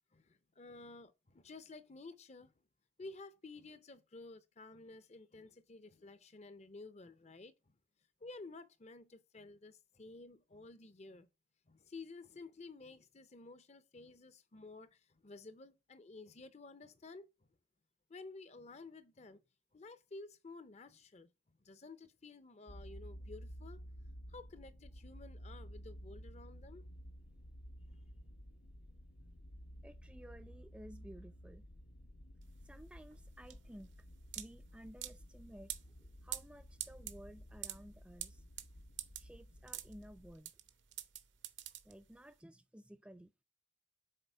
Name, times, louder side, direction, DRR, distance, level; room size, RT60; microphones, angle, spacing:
voice 1, 0.1-2.5 3.0-7.7 8.2-11.3 11.7-17.3 18.1-19.4 19.7-21.3 21.6-23.8 24.3-26.9 27.9-28.1, left 3 dB, 35° left, 0.6 m, -53 dB
sound 1, 22.7-40.4, equal, 65° left, 0.9 m, -53 dB
voice 2, 29.8-31.6 32.6-34.0 34.3-38.5 39.2-40.5 41.8-43.4, equal, 5° right, 0.3 m, -55 dB
sound 2, 32.4-42.3, right 13 dB, 70° right, 0.8 m, -47 dB
6.7 x 4.2 x 4.5 m
head